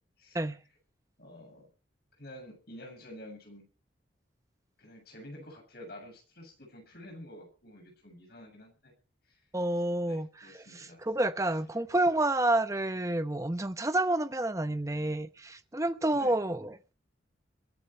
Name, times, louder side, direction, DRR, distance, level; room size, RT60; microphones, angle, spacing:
voice 1, 1.2-1.7 2.2-3.6 4.8-8.9 9.3-9.4 10.1-11.0 16.1-16.3, left 1 dB, 55° left, 7.3 m, -49 dB
voice 2, 9.5-10.3 10.8-16.9, right 1 dB, 15° right, 0.8 m, -29 dB
22.5 x 11.5 x 4.4 m
head